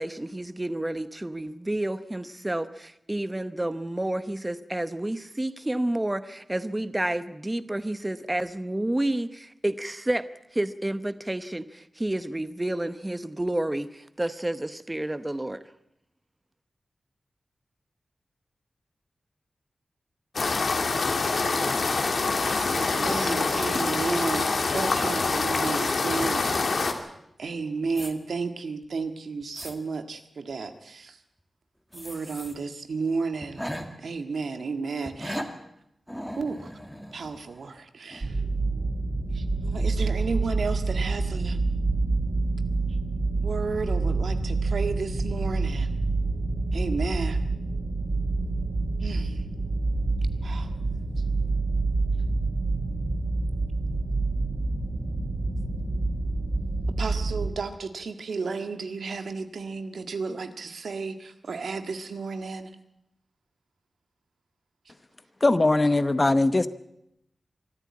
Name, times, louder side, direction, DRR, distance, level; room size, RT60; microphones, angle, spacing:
voice 1, 0.0-10.3 10.5-15.6, right 1 dB, 15° right, 12 dB, 0.9 m, -30 dB
sound 1, 20.3-26.9, left 3 dB, 65° left, 2.3 m, -25 dB
voice 2, 22.6-27.0 27.4-31.2 31.9-33.6 34.0-35.4 36.4-36.7 37.1-38.4 39.3-41.6 43.4-45.9 46.7-47.4 49.0-49.4 50.4-50.7 57.0-62.7, right 4 dB, 80° right, 7 dB, 1.7 m, -33 dB
sound 2, 27.9-28.1 28.8-28.9 29.4-29.8 31.9-32.6 32.9-33.0 33.4-33.9 35.1-35.5 36.1-37.8 38.1-38.3, equal, ahead, 2.0 m, -37 dB
sound 3, 38.2-57.5, right 3 dB, 35° right, 4.4 m, -27 dB
voice 3, 65.4-66.7, left 2 dB, 25° left, 13 dB, 0.8 m, -20 dB
24.0 x 13.5 x 8.6 m, 0.80 s
wide cardioid pair, 125°, 0 cm